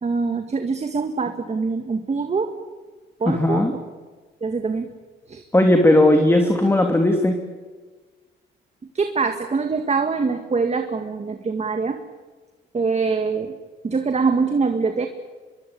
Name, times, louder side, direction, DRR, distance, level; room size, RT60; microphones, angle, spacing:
voice 1, 0.0-2.5 3.2-3.6 4.4-4.9 5.3-5.4 8.9-12.0 12.7-13.5 13.8-15.1, right 4 dB, 35° right, 6 dB, 2.0 m, -23 dB
voice 2, 3.3-3.7 5.5-7.4, left 1 dB, 10° left, 4 dB, 2.9 m, -17 dB
24.5 x 22.5 x 8.7 m, 1.3 s
cardioid pair, 90°, 20 cm